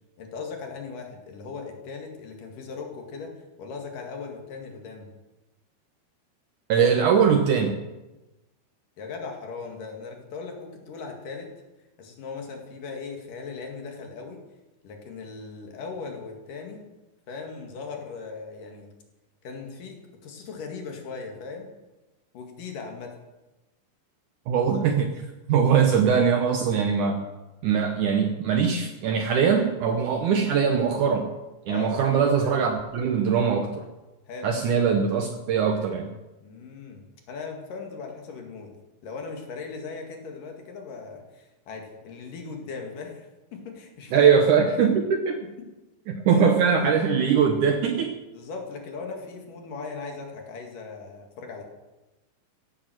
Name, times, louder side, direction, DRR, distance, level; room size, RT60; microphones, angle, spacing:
voice 1, 0.2-5.1 9.0-11.5 12.0-14.4 14.8-16.8 17.3-18.9 19.4-21.7 22.3-23.2 31.7-31.9 34.3-34.5 36.4-38.8 39.0-44.9 45.4-45.7 46.3-46.4 48.3-51.6, left 4 dB, 60° left, 2 dB, 3.4 m, -38 dB
voice 2, 6.7-7.8 24.5-25.1 25.5-27.3 27.6-31.3 31.7-33.8 34.4-36.1 44.1-45.4 46.1-48.1, right 6 dB, 70° right, 5 dB, 2.0 m, -21 dB
16.0 x 9.4 x 7.7 m, 1.1 s
omnidirectional pair, 4.6 m